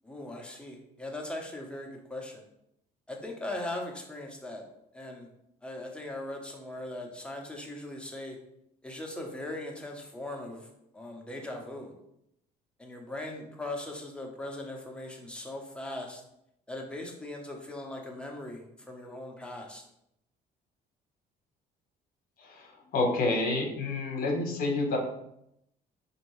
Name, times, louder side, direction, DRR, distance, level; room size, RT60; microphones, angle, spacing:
voice 1, 0.0-2.5 3.1-4.7 4.9-5.3 5.6-8.4 8.8-11.9 12.8-16.2 16.7-19.8, left 1 dB, 5° left, 0 dB, 0.7 m, -39 dB
voice 2, 22.4-25.0, left 2 dB, 60° left, 1 dB, 0.9 m, -29 dB
4.3 x 2.7 x 3.1 m, 0.78 s
cardioid pair, 110°, 17 cm